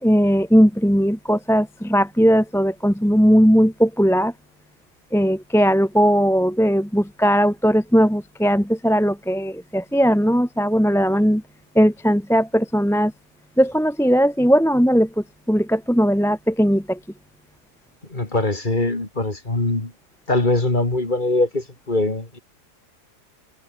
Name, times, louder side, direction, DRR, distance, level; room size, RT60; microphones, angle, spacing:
voice 1, 0.0-4.3 5.1-11.4 11.7-13.1 13.6-17.0, equal, ahead, 1.1 m, -18 dB
voice 2, 18.1-19.9 20.3-22.4, left 2 dB, 30° left, 3.1 m, -22 dB
omnidirectional pair, 1.7 m